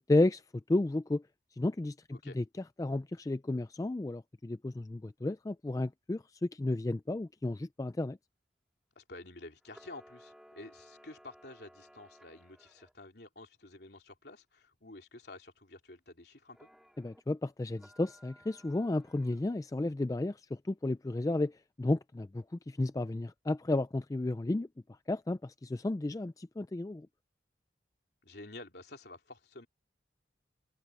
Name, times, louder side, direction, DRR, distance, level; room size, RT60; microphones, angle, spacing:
voice 1, 0.1-0.4 0.7-1.2 1.6-2.4 2.8-8.2 17.0-24.7 25.1-27.1, left 2 dB, 20° left, 0.3 m, -32 dB
voice 2, 8.9-16.7 28.2-29.7, left 2 dB, 60° left, 3.4 m, -50 dB
Camera, 9.6-12.9 16.5-17.2 17.7-19.6, equal, ahead, 2.7 m, -59 dB
open air
head